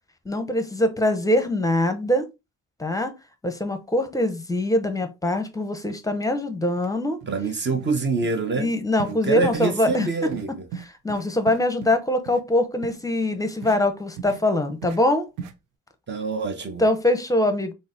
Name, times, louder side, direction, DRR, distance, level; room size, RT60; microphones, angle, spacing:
voice 1, 0.3-2.3 2.8-3.1 3.4-7.2 8.6-10.1 11.0-15.3 16.8-17.7, left 1 dB, 10° left, 0.7 m, -23 dB
sound 1, 6.8-6.9 7.2-7.4 7.7-7.9 8.2-8.4 9.0-9.2 9.4-9.6 9.9-10.1 10.3-10.4 10.7-11.9 12.3-12.4 12.8-13.0 13.6-13.8 14.2-14.4 14.8-15.0 15.4-15.5, right 7 dB, 85° right, 0.6 m, -36 dB
voice 2, 7.3-8.7 9.0-10.7 16.1-16.8, right 3 dB, 35° right, 0.9 m, -26 dB
3.8 x 2.0 x 3.8 m
cardioid pair, 90°, 30 cm